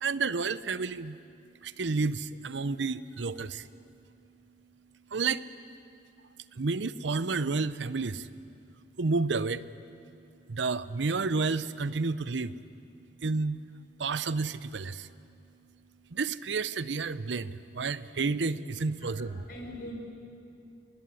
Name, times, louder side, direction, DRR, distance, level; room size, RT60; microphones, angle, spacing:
voice 1, 0.0-1.2 1.6-3.6 5.1-5.4 6.6-8.3 9.0-9.6 10.5-12.5 13.2-13.6 14.0-15.1 16.1-19.4, right 4 dB, 80° right, 16 dB, 0.7 m, -30 dB
voice 2, 18.7-19.9, left 1 dB, 50° left, 0 dB, 5.4 m, -44 dB
24.0 x 20.0 x 9.6 m, 2.5 s
head